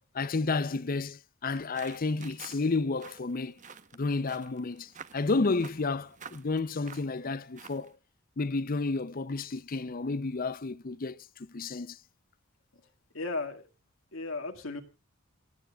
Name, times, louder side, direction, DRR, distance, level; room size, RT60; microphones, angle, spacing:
voice 1, 0.1-3.6 3.9-7.9 8.4-12.0, left 3 dB, 45° left, 0.6 m, -31 dB
sound 1, 1.5-7.9, right 6 dB, 35° right, 1.0 m, -50 dB
voice 2, 13.1-13.7 14.1-14.8, left 3 dB, 75° left, 2.2 m, -35 dB
28.0 x 9.6 x 2.4 m
head